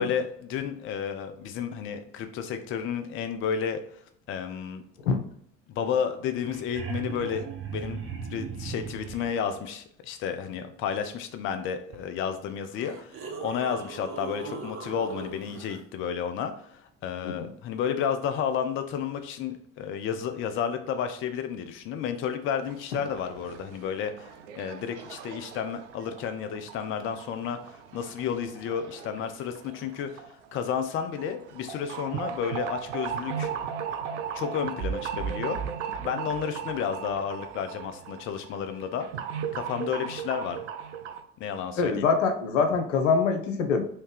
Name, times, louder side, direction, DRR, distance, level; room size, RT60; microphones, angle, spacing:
voice 1, 0.0-3.8 4.3-4.8 5.7-8.0 8.3-30.2 30.5-33.5 34.3-35.6 36.0-39.1 39.5-40.7 41.4-42.0, left 7 dB, 35° left, 8 dB, 0.4 m, -31 dB
sound 1, 6.3-9.4 11.9-12.0 12.7-15.8 18.3-18.4, right 5 dB, 35° right, 0.7 m, -38 dB
sound 2, 22.7-41.2, right 7 dB, 70° right, 0.5 m, -37 dB
voice 2, 41.8-43.8, left 5 dB, 75° left, 6 dB, 0.6 m, -24 dB
3.1 x 2.8 x 3.4 m, 0.65 s
figure-of-eight pair, 60°, 38 cm